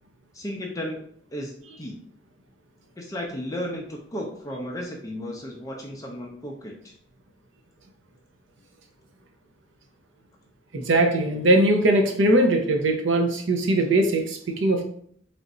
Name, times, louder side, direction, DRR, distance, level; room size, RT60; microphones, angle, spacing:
voice 1, 0.3-1.0 1.3-2.0 3.0-6.9, equal, 15° left, 0 dB, 0.5 m, -34 dB
voice 2, 10.7-14.8, right 1 dB, 70° right, 4 dB, 0.6 m, -20 dB
3.4 x 2.6 x 4.0 m, 0.63 s
head